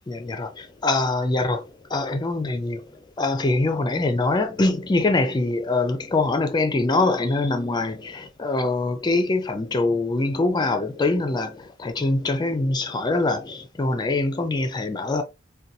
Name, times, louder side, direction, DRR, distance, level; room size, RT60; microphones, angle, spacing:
voice 1, 0.1-15.2, left 2 dB, 20° left, 0.3 m, -24 dB
3.9 x 2.2 x 2.6 m
head